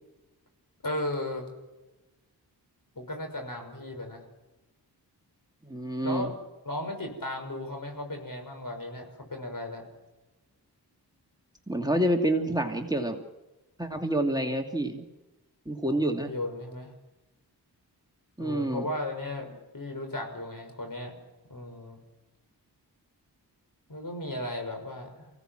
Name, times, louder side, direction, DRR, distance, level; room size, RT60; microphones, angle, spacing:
voice 1, 0.8-1.5 3.0-4.2 6.0-6.3 6.6-9.9 15.9-16.9 18.4-21.1 21.5-22.0 23.9-25.3, left 1 dB, 55° left, 4 dB, 6.2 m, -35 dB
voice 2, 5.6-6.3 11.7-13.2 13.8-15.0 15.7-16.3 18.4-18.9, right 1 dB, 10° right, 2 dB, 2.6 m, -28 dB
24.0 x 17.0 x 7.7 m, 1.1 s
cardioid pair, 40°, 41 cm